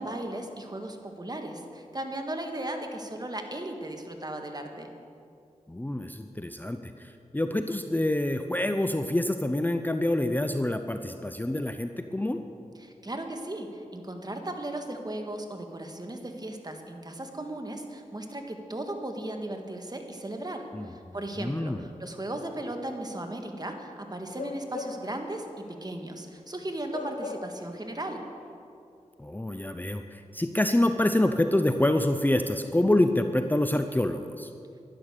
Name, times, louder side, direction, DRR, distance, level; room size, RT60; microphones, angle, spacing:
voice 1, 0.0-4.9 12.8-28.2, right 1 dB, 35° right, 4 dB, 1.7 m, -36 dB
voice 2, 5.7-12.4 20.7-21.8 29.2-34.5, left 1 dB, 15° left, 7 dB, 0.6 m, -27 dB
Bark / Livestock farm animals working animals, 24.3-25.2 25.6-25.8 26.9-27.7 28.0-28.2, left 4 dB, 85° left, 0.8 m, -38 dB
11.5 x 11.5 x 6.8 m, 2.5 s
cardioid pair, 45°, 12 cm